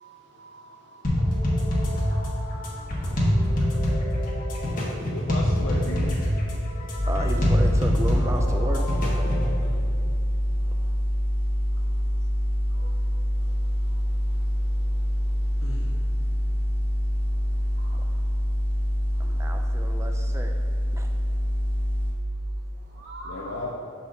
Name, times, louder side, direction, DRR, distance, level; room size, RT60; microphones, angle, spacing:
voice 1, 0.0-3.7 6.6-7.4 10.7-10.8 12.7-13.1 17.8-18.0 19.4-19.6 22.9-23.6, right 1 dB, 50° right, 0 dB, 0.8 m, -48 dB
sound 1, 1.0-9.5, equal, 40° left, 1.1 m, -25 dB
voice 2, 5.1-6.2 9.4-9.8 15.6-15.9 23.2-23.7, left 2 dB, 70° left, -4 dB, 0.6 m, -35 dB
sound 2, 6.9-22.1, equal, 10° left, 1.4 m, -25 dB
voice 3, 7.1-8.9 17.9-18.0 19.2-20.5 20.9-21.1, right 1 dB, 15° right, 4 dB, 0.3 m, -33 dB
6.8 x 4.1 x 3.9 m, 2.7 s
head